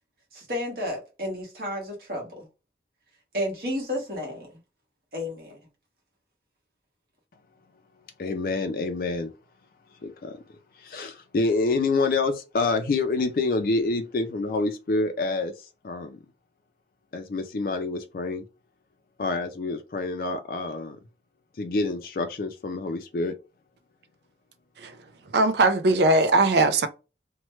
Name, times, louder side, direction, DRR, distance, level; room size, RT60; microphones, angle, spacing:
voice 1, 0.3-2.5 3.3-4.5 5.1-5.6, left 1 dB, 55° right, 1.3 m, -32 dB
voice 2, 8.2-9.3 10.0-10.4 10.8-16.2 17.1-18.4 19.2-21.0 21.6-23.3, left 3 dB, 55° left, 0.4 m, -27 dB
voice 3, 25.3-26.9, right 2 dB, 75° right, 0.5 m, -20 dB
3.0 x 2.2 x 3.1 m
head